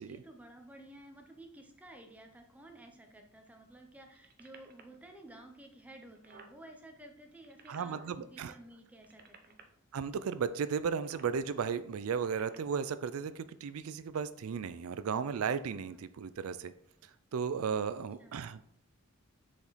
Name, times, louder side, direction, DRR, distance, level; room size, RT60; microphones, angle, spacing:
voice 1, 0.0-9.6 18.2-18.4, right 1 dB, 5° right, 3 dB, 0.8 m, -53 dB
sound 1, 4.1-5.0 5.6-5.7 5.9-6.6 7.2-8.1 8.9-9.6 10.9-11.3 12.1-12.9 13.7-13.8, right 5 dB, 45° right, 0.7 m, -56 dB
voice 2, 7.7-8.5 9.9-16.7 17.0-18.6, right 6 dB, 90° right, 13 dB, 0.4 m, -35 dB
6.7 x 5.1 x 4.1 m, 0.71 s
head